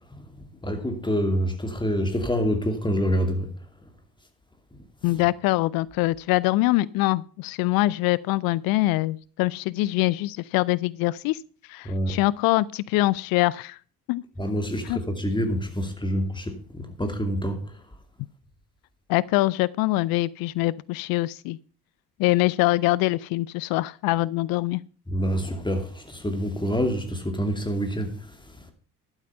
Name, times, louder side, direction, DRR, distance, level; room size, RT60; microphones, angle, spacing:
voice 1, 0.6-3.5 11.8-12.1 14.4-17.6 25.1-28.2, equal, 10° left, 2.5 m, -26 dB
voice 2, 5.0-11.4 11.7-13.8 14.1-14.2 14.8-15.0 19.1-21.6 22.2-24.8, left 19 dB, 50° left, 0.5 m, -24 dB
11.5 x 8.2 x 5.5 m
figure-of-eight pair, 55°, 47 cm